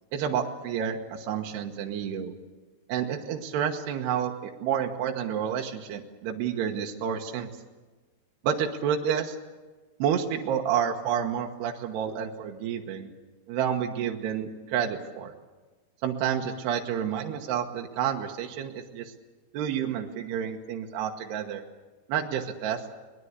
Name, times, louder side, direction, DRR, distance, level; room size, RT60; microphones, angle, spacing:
voice 1, 0.1-2.3 2.9-7.5 8.4-9.4 10.0-13.1 13.5-15.3 16.0-19.1 19.5-21.6 22.1-22.8, right 8 dB, 75° right, 2 dB, 3.3 m, -29 dB
22.5 x 20.5 x 8.2 m, 1.3 s
omnidirectional pair, 4.9 m